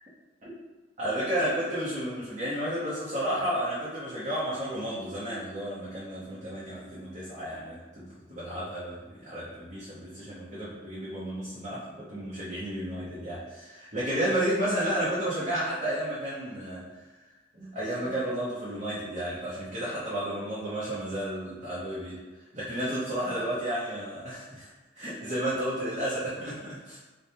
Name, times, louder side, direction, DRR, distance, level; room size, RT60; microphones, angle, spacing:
voice 1, 1.0-13.4 13.7-16.9 17.5-22.2 22.5-27.0, right 1 dB, 40° right, -9 dB, 0.8 m, -32 dB
3.3 x 2.1 x 4.1 m, 1.2 s
head